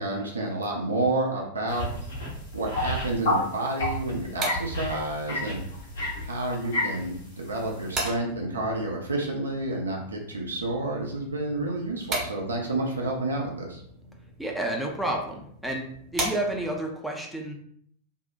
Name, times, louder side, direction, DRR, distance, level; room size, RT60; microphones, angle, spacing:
voice 1, 0.0-1.8 2.5-5.6 6.2-13.8, right 2 dB, 75° right, 0 dB, 0.5 m, -30 dB
sound 1, 1.7-3.4 3.8-7.1 7.5-7.8, left 1 dB, 65° left, 1.0 m, -31 dB
sound 2, 4.0-16.9, right 2 dB, 30° right, 0.7 m, -39 dB
voice 2, 14.4-15.9 16.1-17.5, right 1 dB, ahead, -1 dB, 0.4 m, -30 dB
2.6 x 2.1 x 2.4 m, 0.65 s
figure-of-eight pair, 90°, 0 cm